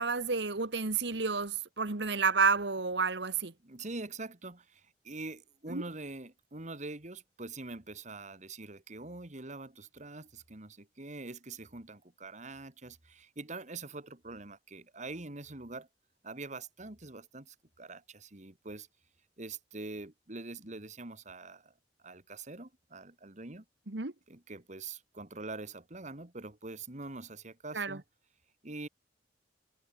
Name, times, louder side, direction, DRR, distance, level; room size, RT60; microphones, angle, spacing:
voice 1, 0.0-3.5 5.7-5.8 23.9-24.1 27.7-28.0, right 4 dB, 65° right, 1.6 m, -30 dB
voice 2, 3.6-15.9 16.2-18.9 19.4-21.7 22.0-23.6 24.3-28.0 28.6-28.9, right 3 dB, 40° right, 2.1 m, -44 dB
head